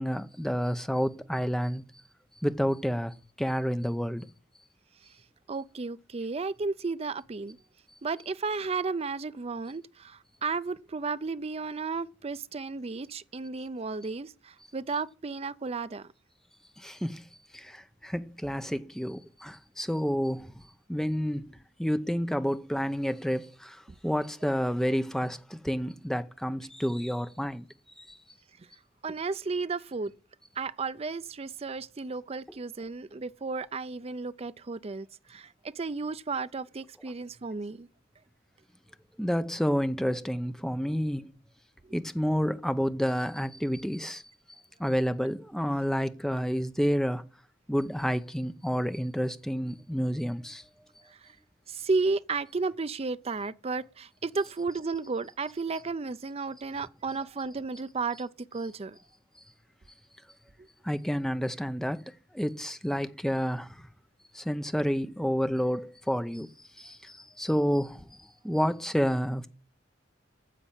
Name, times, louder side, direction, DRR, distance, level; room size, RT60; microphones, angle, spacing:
voice 1, 0.0-1.8 2.4-4.3 16.8-17.2 17.5-20.6 20.9-21.5 21.8-27.7 28.0-28.2 39.2-41.3 41.9-44.2 44.8-47.2 47.7-50.6 60.8-62.0 62.3-63.9 64.3-66.5 66.8-69.5, equal, 5° left, 0.7 m, -29 dB
voice 2, 5.5-7.6 8.0-16.1 29.0-30.1 30.6-37.9 41.9-42.0 51.7-59.0, right 4 dB, 30° right, 0.5 m, -33 dB
9.9 x 7.3 x 8.8 m
head